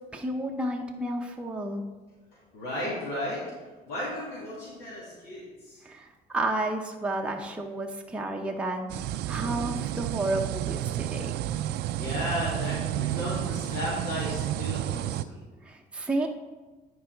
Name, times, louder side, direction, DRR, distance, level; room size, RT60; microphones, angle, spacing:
voice 1, 0.1-1.8 5.8-8.9 9.3-11.3 15.6-16.3, right 2 dB, 5° right, 1 dB, 0.7 m, -31 dB
voice 2, 2.5-3.4 3.9-5.8 11.9-15.4, left 1 dB, 85° left, -7 dB, 2.5 m, -34 dB
sound 1, 8.9-15.2, right 13 dB, 75° right, 0.4 m, -31 dB
10.0 x 4.7 x 4.6 m, 1.3 s
cardioid pair, 110°, 17 cm